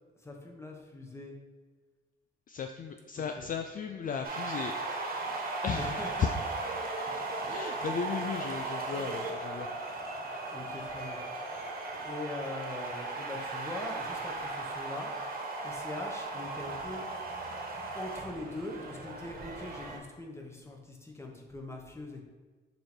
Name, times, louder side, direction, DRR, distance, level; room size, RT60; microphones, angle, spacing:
voice 1, 0.2-1.4 3.4-3.5 5.7-6.3 10.5-11.2 12.0-15.1 15.6-17.0 17.9-22.2, left 2 dB, 15° left, 1 dB, 1.2 m, -42 dB
voice 2, 2.5-5.2 5.6-6.4 7.5-9.7, left 6 dB, 45° left, 6 dB, 0.4 m, -35 dB
sound 1, 4.2-20.0, right 3 dB, 50° right, 1.4 m, -37 dB
6.7 x 3.2 x 4.4 m, 1.4 s
cardioid pair, 90°, 20 cm